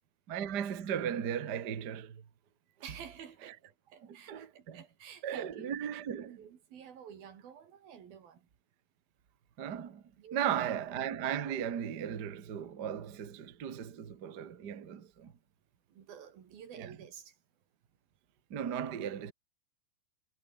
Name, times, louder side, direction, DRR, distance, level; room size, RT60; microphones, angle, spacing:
voice 1, 0.3-2.2 4.0-4.8 5.2-6.3 9.6-10.0 10.3-15.3 16.7-16.9 18.5-19.3, right 9 dB, 40° right, 1.5 m, -36 dB
voice 2, 2.8-8.5 10.2-10.7 15.9-17.3, right 8 dB, 80° right, 4.7 m, -51 dB
omnidirectional pair, 4.1 m